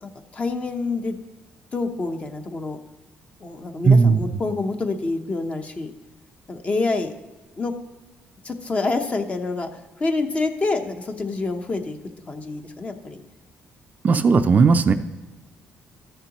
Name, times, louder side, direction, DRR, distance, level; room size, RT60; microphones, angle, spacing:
voice 1, 0.0-1.2 1.7-2.8 3.4-5.9 6.5-7.1 7.6-7.7 8.4-12.0 12.3-13.2, left 3 dB, 30° left, 6 dB, 0.9 m, -27 dB
voice 2, 3.9-4.2 14.0-14.9, right 4 dB, 40° right, 9 dB, 0.4 m, -16 dB
13.5 x 6.6 x 3.0 m, 1.2 s
cardioid pair, 115°, 4 cm